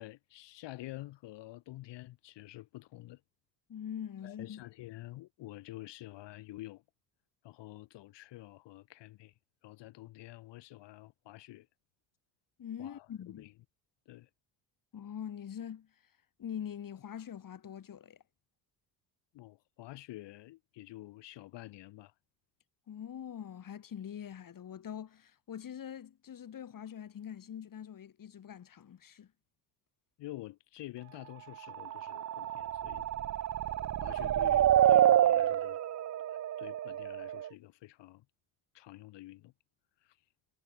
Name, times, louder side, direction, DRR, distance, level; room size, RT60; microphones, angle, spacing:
voice 1, 0.0-3.2 4.2-6.8 7.4-9.3 9.6-11.7 12.8-13.1 13.4-13.5 14.1-14.3 19.3-22.1 30.2-33.1 33.8-35.8 36.3-38.2 38.7-39.5 40.0-40.2, left 17 dB, 70° left, 3.2 m, -48 dB
voice 2, 3.7-4.6 12.6-13.5 14.9-16.1 16.4-18.2 22.9-29.3, left 9 dB, 50° left, 4.3 m, -43 dB
sound 1, 31.7-37.5, right 11 dB, 40° right, 0.7 m, -28 dB
supercardioid pair, 80°, 43 cm